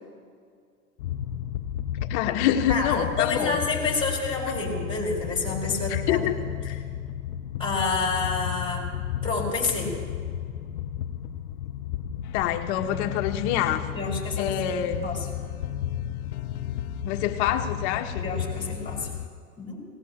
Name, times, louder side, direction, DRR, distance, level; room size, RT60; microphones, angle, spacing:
sound 1, 1.0-19.3, left 10 dB, 75° left, 0.8 m, -33 dB
voice 1, 2.1-3.6 5.9-6.4 6.7-6.8 12.3-13.9 14.4-15.0 17.0-18.3, left 11 dB, 50° left, 5 dB, 1.4 m, -26 dB
voice 2, 2.7-6.3 7.6-8.9 9.2-10.0 13.9-14.6 15.0-15.3 18.2-19.1 19.6-19.8, left 3 dB, 10° left, -2 dB, 5.0 m, -28 dB
25.5 x 19.0 x 3.0 m, 2.1 s
hypercardioid pair, 115°, 44 cm